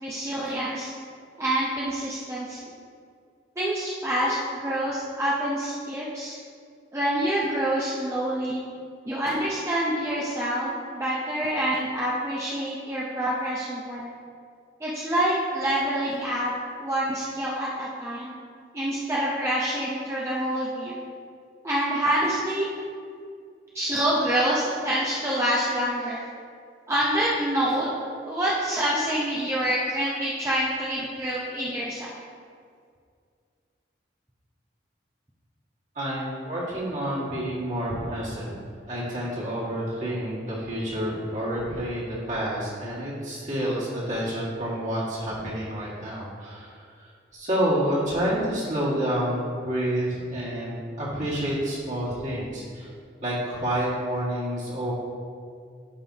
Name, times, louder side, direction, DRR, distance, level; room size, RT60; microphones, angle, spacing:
voice 1, 0.0-0.9 1.4-2.7 3.6-6.4 6.9-8.6 9.0-14.1 14.8-16.5 16.8-18.3 18.7-21.0 21.6-22.7 23.7-26.2 26.9-27.9 28.2-32.2, right 1 dB, 15° right, -6 dB, 0.7 m, -27 dB
voice 2, 36.0-38.5 38.9-47.1 47.3-52.9 53.2-54.9, equal, 40° right, -6 dB, 1.9 m, -29 dB
11.0 x 5.5 x 2.8 m, 2.2 s
head